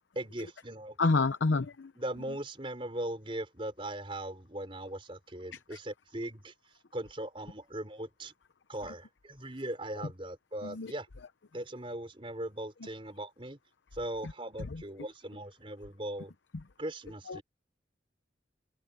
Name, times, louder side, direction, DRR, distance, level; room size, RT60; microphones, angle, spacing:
voice 1, 0.1-1.0 2.0-6.5 6.9-8.3 8.7-11.1 11.5-13.6 13.9-16.3 16.8-17.4, right 1 dB, 30° right, 4.5 m, -39 dB
voice 2, 1.0-1.9 5.5-5.8 10.6-10.9 14.7-14.8 17.3-17.4, left 3 dB, 85° left, 0.7 m, -29 dB
open air
head